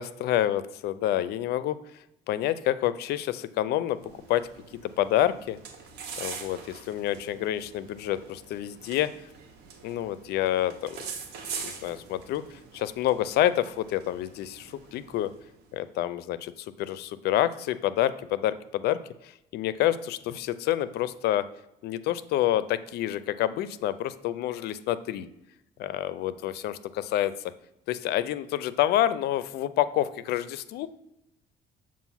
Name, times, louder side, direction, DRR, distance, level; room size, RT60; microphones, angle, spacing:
voice 1, 0.0-1.8 2.3-4.4 5.0-5.6 6.2-9.1 9.8-11.0 11.6-12.4 12.7-15.3 15.7-16.5 16.8-19.0 19.5-21.4 21.8-25.3 25.8-27.3 27.9-30.9, left 12 dB, 75° left, 15 dB, 0.4 m, -28 dB
sound 1, 3.9-15.7, right 6 dB, 85° right, 0.9 m, -44 dB
6.9 x 2.5 x 5.6 m, 0.86 s
cardioid pair, 110°, 17 cm